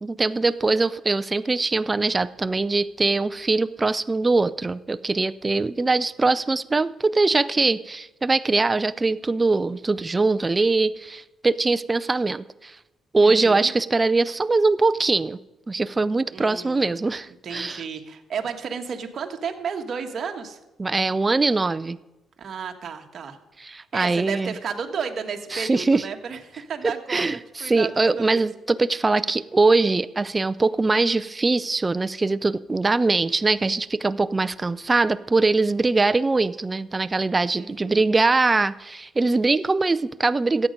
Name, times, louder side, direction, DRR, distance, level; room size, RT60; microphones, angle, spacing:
voice 1, 0.0-12.8 13.1-15.4 15.7-17.8 20.8-22.0 23.6-24.5 25.5-26.0 27.1-40.7, right 3 dB, 25° right, 13 dB, 0.4 m, -22 dB
voice 2, 13.2-13.7 16.3-16.9 17.4-20.6 22.4-23.4 23.9-28.4 37.6-38.1, right 6 dB, 55° right, 5 dB, 1.3 m, -33 dB
13.5 x 8.6 x 5.2 m, 0.99 s
cardioid pair, 90°, 0 cm